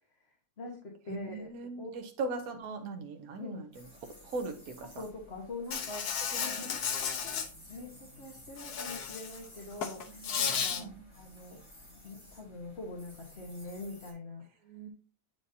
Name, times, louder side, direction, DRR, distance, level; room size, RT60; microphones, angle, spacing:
voice 1, 0.2-1.9 3.3-3.7 4.8-10.9 11.1-11.6 12.0-14.5, left 2 dB, 45° left, 0 dB, 1.5 m, -44 dB
voice 2, 1.1-3.7 4.2-4.9 6.3-6.7 9.8-11.0 14.6-14.9, right 3 dB, 70° right, 5 dB, 1.3 m, -40 dB
sound 1, 3.7-14.1, left 1 dB, 15° left, 2.5 m, -54 dB
Insect, 5.7-7.5 8.6-9.4 9.7-10.8, left 7 dB, 80° left, 1.4 m, -33 dB
8.0 x 5.1 x 2.7 m, 0.37 s
omnidirectional pair, 1.7 m